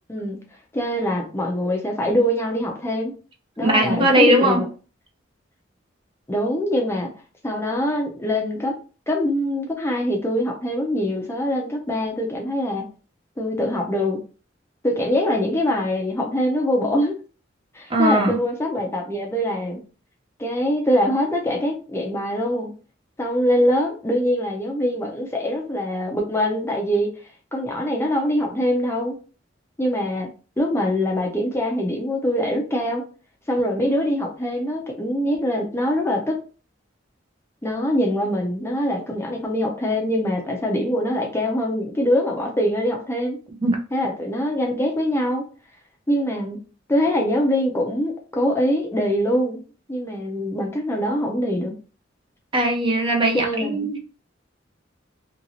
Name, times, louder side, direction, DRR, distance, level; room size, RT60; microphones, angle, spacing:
voice 1, 0.7-3.1 3.6-4.6 6.3-7.1 7.4-8.8 9.1-12.8 13.4-14.2 14.8-17.2 17.7-19.8 20.4-22.7 23.2-27.1 27.5-29.2 29.8-30.3 30.6-33.0 33.5-36.4 37.6-43.4 43.9-45.4 46.1-46.6 46.9-49.6 49.9-51.7 53.3-53.9, equal, 15° left, 1 dB, 0.5 m, -23 dB
voice 2, 3.6-4.6 17.9-18.4 43.6-43.8 52.5-54.0, right 1 dB, 30° right, 1 dB, 0.6 m, -19 dB
2.9 x 2.8 x 2.7 m, 0.36 s
head